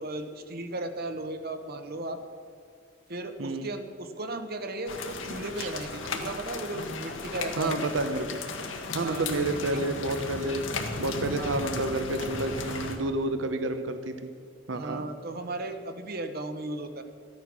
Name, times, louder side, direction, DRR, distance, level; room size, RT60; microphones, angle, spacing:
voice 1, 0.0-2.2 3.1-7.7 9.0-9.6 11.3-11.7 14.7-17.0, right 2 dB, 50° right, 8 dB, 1.0 m, -36 dB
sound 1, 4.9-13.0, left 3 dB, 80° left, 1.4 m, -35 dB
voice 2, 7.6-8.3 8.9-10.7 11.0-14.3 14.7-15.1, right 2 dB, 70° right, 9 dB, 0.8 m, -30 dB
14.0 x 10.0 x 6.1 m, 2.2 s
head